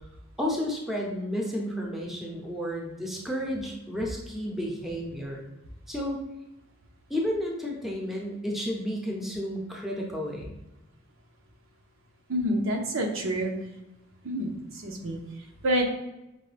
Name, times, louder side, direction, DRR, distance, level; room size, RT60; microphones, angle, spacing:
voice 1, 0.4-5.4 5.9-6.2 7.1-10.6, equal, ahead, -2 dB, 0.7 m, -32 dB
voice 2, 12.3-13.5 14.2-14.5 14.8-15.2 15.6-15.8, equal, 80° right, 2 dB, 0.7 m, -27 dB
5.3 x 2.2 x 3.3 m, 0.93 s
head